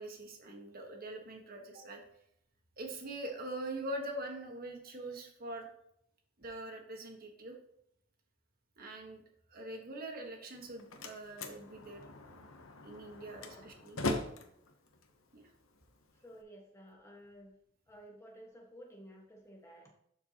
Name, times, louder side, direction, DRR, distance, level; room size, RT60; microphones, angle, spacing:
voice 1, 0.0-2.0 2.8-5.7 6.4-7.5 8.8-9.2 9.5-12.0 12.3-12.4 12.8-14.0 15.3-15.4, right 1 dB, 50° right, 2 dB, 1.4 m, -43 dB
Slam, 10.4-16.4, left 2 dB, 85° left, 0.9 m, -41 dB
voice 2, 13.3-13.9 16.2-17.5 17.9-19.9, equal, 15° left, 0 dB, 1.5 m, -54 dB
11.5 x 4.5 x 2.9 m, 0.72 s
head